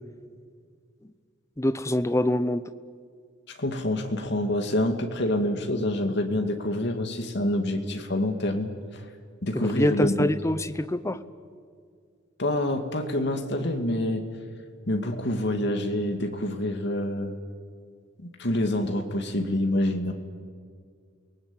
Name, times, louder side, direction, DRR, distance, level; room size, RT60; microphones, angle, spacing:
voice 1, 1.6-2.7 9.5-11.2, left 1 dB, 15° left, 13 dB, 0.8 m, -25 dB
voice 2, 3.6-9.0 9.4-10.3 12.4-14.2 14.9-17.3 18.2-20.1, left 1 dB, 60° left, 5 dB, 2.4 m, -27 dB
29.0 x 19.5 x 9.0 m, 2.1 s
head